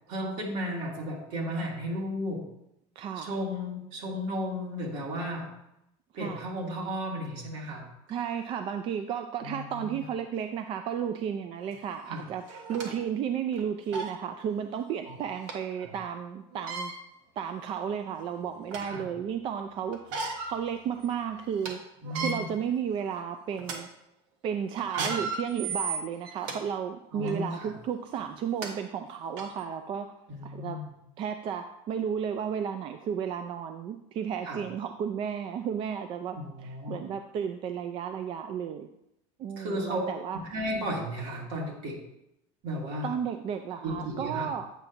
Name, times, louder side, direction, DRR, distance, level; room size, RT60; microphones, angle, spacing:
voice 1, 0.1-2.5 3.2-5.5 6.2-7.9 9.4-10.0 12.1-12.2 15.1-15.2 15.7-15.9 18.8-19.1 22.0-22.4 24.9-25.1 27.1-27.7 30.3-30.9 34.5-34.6 36.4-37.0 39.6-40.0 40.3-42.0 42.6-43.1 43.8-44.5, equal, 70° right, -2 dB, 2.4 m, -34 dB
voice 2, 3.0-3.3 6.2-6.5 8.1-16.9 17.4-20.2 20.5-21.8 22.2-23.9 24.4-30.1 30.4-30.8 31.2-38.9 39.4-40.4 43.0-44.7, right 8 dB, 35° right, 7 dB, 0.4 m, -33 dB
sound 1, 11.7-11.8 12.5-12.9 13.5-13.6 13.9-14.2 15.5-15.6 16.5-16.9 17.7-17.8 18.3-19.0 19.9-20.6 21.0-21.1 21.4-21.7 22.0-22.4 23.0-23.2 23.6-23.8 24.8-26.6 27.2-27.4 28.2-28.3 28.6-28.7 29.4-29.5, right 4 dB, 85° right, 1.2 m, -34 dB
8.2 x 5.7 x 2.6 m, 0.82 s
cardioid pair, 155°, 15 cm